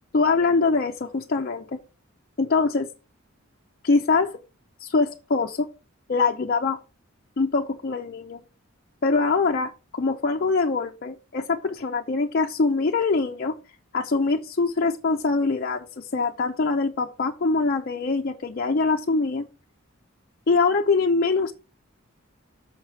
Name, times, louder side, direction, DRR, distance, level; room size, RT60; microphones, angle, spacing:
voice 1, 0.1-1.8 2.4-2.9 3.8-4.4 4.8-5.7 6.1-6.8 7.4-8.4 9.0-13.5 13.9-19.5 20.5-21.5, left 4 dB, 45° left, 0.5 m, -23 dB
6.4 x 6.3 x 4.5 m
head